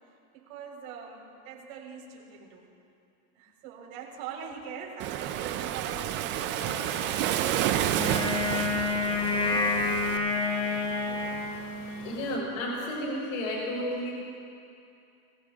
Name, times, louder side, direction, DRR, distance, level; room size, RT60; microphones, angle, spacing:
voice 1, 0.3-2.7 3.4-7.2 11.1-11.5, right 6 dB, 65° right, -2 dB, 4.0 m, -43 dB
Waves surf, 5.0-10.2, right 11 dB, 30° right, 0.3 m, -30 dB
sound 1, 6.6-12.4, left 4 dB, 65° left, 1.8 m, -46 dB
Wind instrument woodwind instrument, 8.0-12.2, left 3 dB, 10° left, 1.1 m, -29 dB
voice 2, 12.0-14.1, left 1 dB, 85° left, -6 dB, 4.0 m, -32 dB
23.0 x 16.0 x 2.4 m, 2.6 s
supercardioid pair, 140°, 44 cm